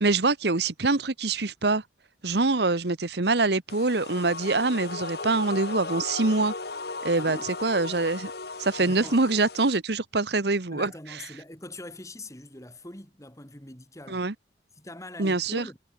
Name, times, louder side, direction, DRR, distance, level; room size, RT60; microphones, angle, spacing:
voice 1, 0.0-1.8 2.2-6.5 7.0-8.3 8.6-10.9 14.1-14.3 15.2-15.7, right 3 dB, 65° right, 1.2 m, -24 dB
sound 1, 3.7-9.8, left 3 dB, 60° left, 2.0 m, -36 dB
voice 2, 7.1-7.5 8.8-9.2 10.7-14.2 14.8-15.8, left 1 dB, 15° left, 4.2 m, -43 dB
head